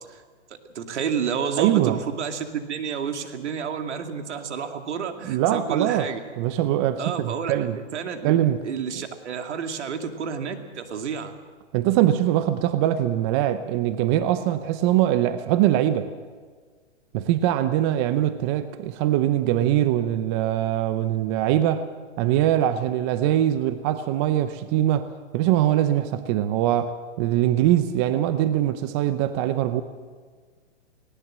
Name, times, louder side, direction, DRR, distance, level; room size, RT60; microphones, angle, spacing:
voice 1, 0.5-6.2 7.0-8.4 8.6-11.3, right 7 dB, 70° right, 6 dB, 2.4 m, -30 dB
voice 2, 1.6-2.0 5.2-6.1 6.4-7.8 8.2-8.6 9.0-9.1 11.7-16.1 17.1-21.8 22.2-25.1 25.3-29.8, right 12 dB, 25° right, 12 dB, 0.6 m, -22 dB
19.5 x 18.0 x 7.5 m, 1.5 s
hypercardioid pair, 140°, 36 cm